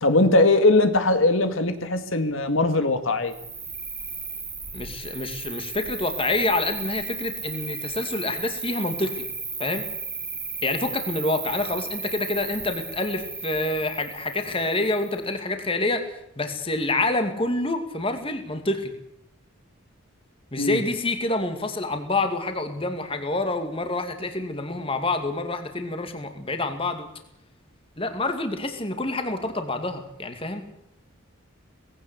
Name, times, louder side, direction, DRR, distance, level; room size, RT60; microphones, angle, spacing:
voice 1, 0.0-3.3 20.6-20.8, left 2 dB, 70° left, 8 dB, 2.1 m, -20 dB
Cricket, 3.3-15.2, right 4 dB, 10° right, 2.6 m, -35 dB
voice 2, 4.7-9.2 9.6-9.8 10.6-18.9 20.5-27.1 28.0-30.7, left 2 dB, 25° left, 7 dB, 2.3 m, -27 dB
19.5 x 17.0 x 8.3 m, 0.74 s
head